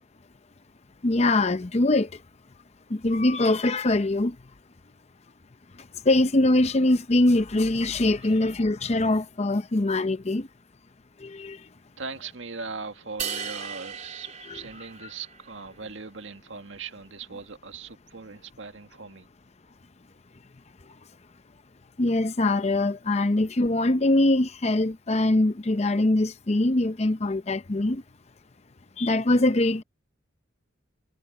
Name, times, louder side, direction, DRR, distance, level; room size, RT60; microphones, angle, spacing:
voice 1, 1.0-2.2 2.9-4.4 5.8-10.5 11.2-11.7 22.0-28.0 29.0-29.8, left 2 dB, 35° left, 0.7 m, -23 dB
voice 2, 12.0-19.3, right 4 dB, 80° right, 1.8 m, -39 dB
sound 1, 13.2-15.5, right 7 dB, 40° right, 4.0 m, -36 dB
head